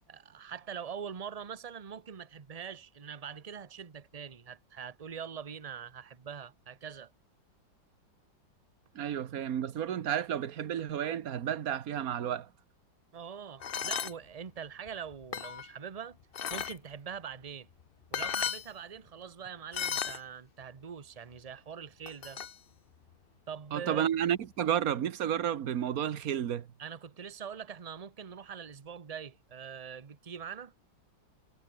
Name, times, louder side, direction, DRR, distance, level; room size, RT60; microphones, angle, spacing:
voice 1, 0.1-7.1 13.1-16.2 16.5-17.7 18.1-22.4 23.5-24.1 26.8-30.7, right 7 dB, 35° right, 0.5 m, -43 dB
voice 2, 8.9-12.5 23.7-26.7, right 9 dB, 55° right, 1.3 m, -31 dB
sound 1, 13.6-14.1 14.9-15.7 16.3-16.8 17.8-17.9 18.1-18.7 19.7-20.2 22.1-22.5, left 8 dB, 80° left, 0.5 m, -34 dB
omnidirectional pair, 2.1 m